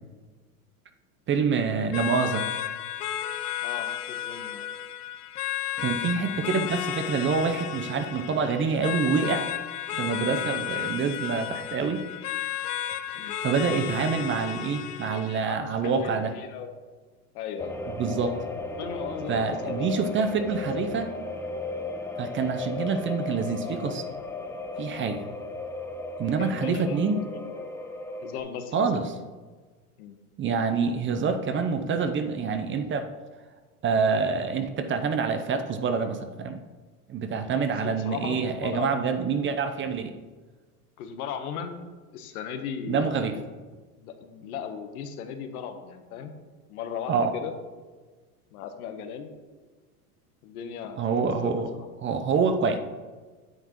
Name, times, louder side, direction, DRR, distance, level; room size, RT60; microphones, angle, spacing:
voice 1, 1.3-2.5 5.8-9.5 9.9-12.0 13.1-16.3 18.0-18.4 19.3-21.2 22.2-24.1 24.8-25.3 26.2-27.2 28.7-29.1 30.4-33.1 33.8-36.6 37.1-40.1 42.9-43.3 47.1-47.3 51.0-51.7 52.0-52.8, right 5 dB, 25° right, 8 dB, 0.7 m, -26 dB
sound 1, 1.9-15.5, left 11 dB, 90° left, 0.6 m, -33 dB
voice 2, 3.6-4.7 13.1-13.4 15.5-16.7 17.3-17.8 18.8-20.4 24.9-25.1 26.3-27.6 28.2-29.2 30.0-30.2 37.8-38.9 41.0-41.8 42.1-43.3 44.0-46.3 46.7-47.5 48.5-49.3 50.4-51.6, left 7 dB, 75° left, 7 dB, 1.2 m, -37 dB
sound 2, 17.6-28.4, left 3 dB, 5° left, 0.9 m, -35 dB
9.5 x 8.0 x 3.0 m, 1.4 s
hypercardioid pair, 100°, 45 cm